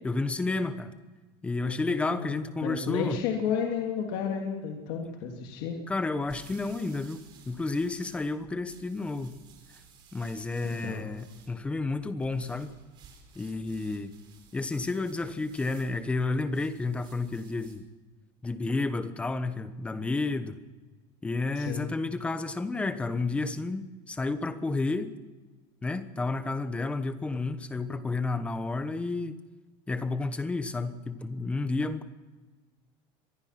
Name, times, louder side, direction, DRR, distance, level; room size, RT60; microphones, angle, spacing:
voice 1, 0.0-0.9 1.4-3.2 5.9-9.4 10.1-12.7 13.3-14.1 14.5-17.8 18.4-20.6 21.2-25.1 25.8-29.4 29.9-32.1, left 3 dB, 10° left, 11 dB, 1.1 m, -31 dB
voice 2, 2.1-5.8 10.6-11.1 21.5-21.9, left 7 dB, 65° left, 1 dB, 2.9 m, -32 dB
sound 1, 6.0-17.9, right 6 dB, 40° right, 5.0 m, -56 dB
25.0 x 20.0 x 5.9 m, 1.3 s
cardioid pair, 170°, 12 cm